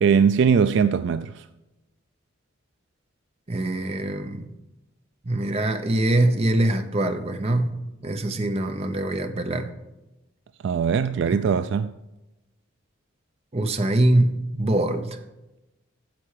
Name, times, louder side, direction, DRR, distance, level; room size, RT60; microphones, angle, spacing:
voice 1, 0.0-1.4 10.6-11.9, right 6 dB, 60° right, 0.3 m, -21 dB
voice 2, 3.5-4.5 5.3-9.7 11.3-11.5 13.5-15.2, right 1 dB, 30° right, 0.7 m, -23 dB
10.0 x 7.5 x 4.8 m
head